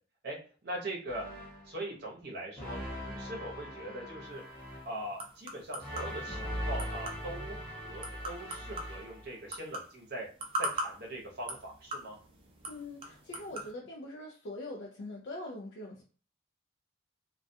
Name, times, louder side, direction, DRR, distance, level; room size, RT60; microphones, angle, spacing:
voice 1, 0.6-1.2 1.7-2.8 3.0-4.4 4.8-10.3 10.6-12.2, right 1 dB, 50° right, -1 dB, 0.7 m, -41 dB
sound 1, 1.1-1.7 2.6-5.0 5.8-9.3, equal, 10° left, 0.9 m, -40 dB
sound 2, 4.3-13.7, right 1 dB, 25° right, 0.4 m, -42 dB
voice 2, 12.7-16.0, left 1 dB, 55° left, -1 dB, 0.3 m, -43 dB
2.2 x 2.2 x 2.6 m, 0.40 s
head